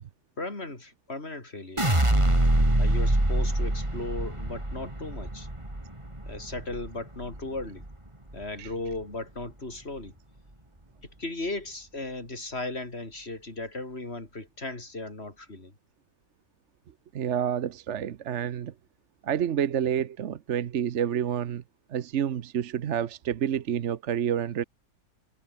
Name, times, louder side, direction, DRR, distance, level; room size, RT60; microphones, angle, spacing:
voice 1, 0.4-2.0 2.8-5.5 6.3-7.8 8.3-10.1 11.2-15.7, left 2 dB, 35° left, 4.6 m, -36 dB
sound 1, 1.8-7.9 8.3-8.9, right 1 dB, 15° right, 4.1 m, -25 dB
voice 2, 17.1-18.7 19.2-21.6 21.9-24.6, right 9 dB, 55° right, 1.0 m, -28 dB
omnidirectional pair, 1.8 m